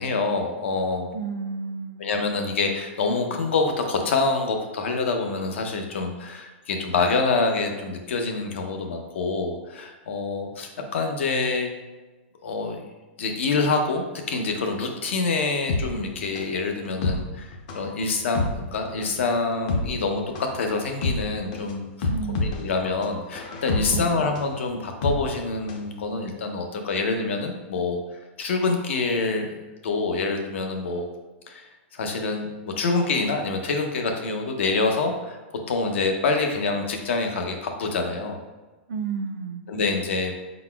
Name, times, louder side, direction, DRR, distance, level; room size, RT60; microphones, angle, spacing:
voice 1, 0.0-1.1 2.0-11.7 12.4-12.8 13.2-20.2 20.5-28.0 28.4-29.5 29.8-31.1 31.5-35.4 35.7-38.4 39.7-40.3, left 3 dB, 75° left, 4 dB, 0.7 m, -26 dB
voice 2, 1.1-2.1 22.0-22.5 23.9-24.3 38.9-39.6, right 5 dB, 75° right, 6 dB, 0.5 m, -31 dB
sound 1, 15.7-25.9 26.2-26.3, left 3 dB, 35° left, 0.5 m, -29 dB
4.8 x 4.0 x 2.3 m, 1.2 s
supercardioid pair, 180°, 7 cm